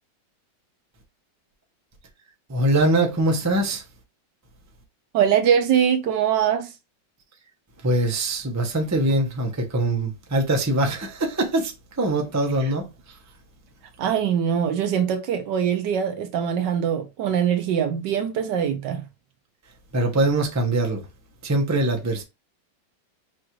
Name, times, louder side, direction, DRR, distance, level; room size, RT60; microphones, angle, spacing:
voice 1, 2.5-3.8 7.8-11.7 12.0-12.9 19.9-21.0 21.4-22.2, right 1 dB, 20° right, 0.4 m, -22 dB
voice 2, 5.1-6.7 14.0-19.0, right 8 dB, 70° right, 1.3 m, -22 dB
6.2 x 2.5 x 3.0 m
omnidirectional pair, 2.1 m